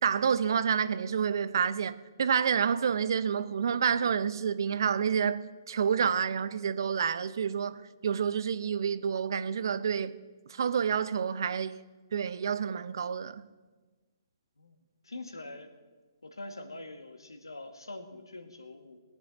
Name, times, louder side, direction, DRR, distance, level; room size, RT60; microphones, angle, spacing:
voice 1, 0.0-10.1 10.5-11.8 12.1-13.4, right 7 dB, 60° right, 0.7 m, -29 dB
voice 2, 15.0-15.7 16.2-19.0, left 2 dB, 85° left, 1.8 m, -44 dB
20.5 x 6.9 x 7.1 m
figure-of-eight pair, 130°, 2 cm